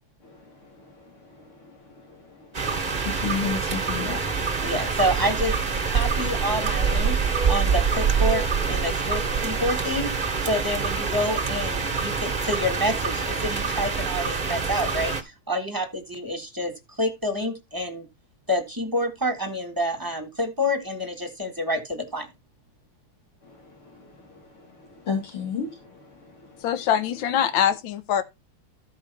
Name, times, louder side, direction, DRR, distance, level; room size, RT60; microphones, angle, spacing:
sound 1, 2.5-15.2, right 5 dB, 25° right, 1.3 m, -25 dB
voice 1, 3.0-4.4 25.1-25.7 26.0-26.1, left 6 dB, 85° left, 4.0 m, -30 dB
voice 2, 4.6-5.6 5.9-7.2 7.5-10.1 10.4-18.1 18.5-22.3, left 1 dB, 10° right, 1.4 m, -28 dB
voice 3, 26.6-28.2, left 9 dB, 70° left, 1.7 m, -23 dB
14.0 x 5.0 x 4.1 m
omnidirectional pair, 2.3 m